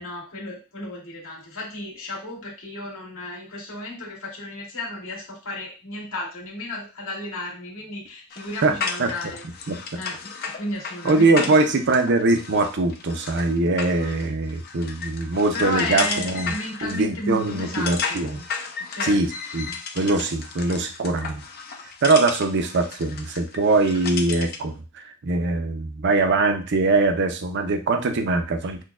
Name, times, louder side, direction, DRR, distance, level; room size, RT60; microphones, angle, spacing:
voice 1, 0.0-9.4 9.9-11.6 15.5-18.2 18.9-19.2, left 2 dB, 65° left, -4 dB, 1.7 m, -33 dB
sound 1, 8.3-24.7, left 5 dB, 45° left, 0.5 m, -34 dB
voice 2, 11.0-16.5 16.8-18.4 19.0-21.4 22.0-28.8, right 3 dB, 55° right, 6 dB, 0.6 m, -22 dB
6.1 x 2.2 x 2.3 m, 0.33 s
head